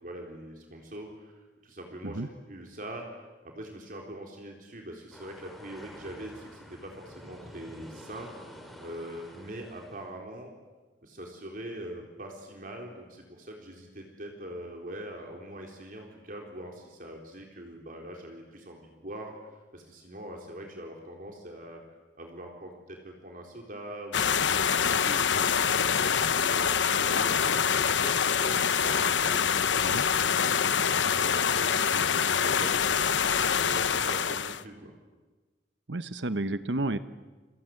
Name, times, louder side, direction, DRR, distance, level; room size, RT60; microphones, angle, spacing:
voice 1, 0.0-8.3 8.8-10.5 11.0-19.4 19.7-21.8 22.2-29.6 29.9-33.3 33.6-34.9, right 1 dB, 50° right, 1 dB, 4.1 m, -43 dB
sound 1, 5.1-10.1, equal, ahead, 4.2 m, -48 dB
sound 2, 24.1-34.6, left 7 dB, 90° left, 0.9 m, -25 dB
voice 2, 35.9-37.0, right 2 dB, 75° right, 12 dB, 1.0 m, -31 dB
29.5 x 25.0 x 7.9 m, 1.3 s
head